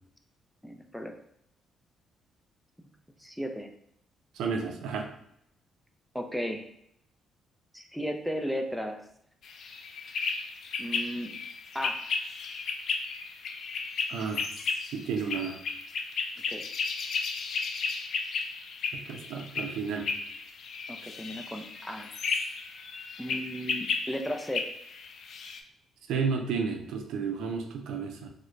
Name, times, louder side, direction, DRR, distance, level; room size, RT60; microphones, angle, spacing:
voice 1, 0.6-1.2 3.2-3.7 6.1-6.7 7.7-9.0 10.8-11.3 11.7-12.0 16.5-16.6 20.9-22.1 23.2-24.6, equal, ahead, 3 dB, 0.4 m, -35 dB
voice 2, 4.4-5.1 14.1-14.4 14.9-15.6 18.9-20.1 26.1-28.3, right 5 dB, 85° right, 3 dB, 0.5 m, -32 dB
sound 1, 9.4-25.6, left 5 dB, 65° left, 0.4 m, -34 dB
3.5 x 2.1 x 3.2 m, 0.73 s
cardioid pair, 90°, 0 cm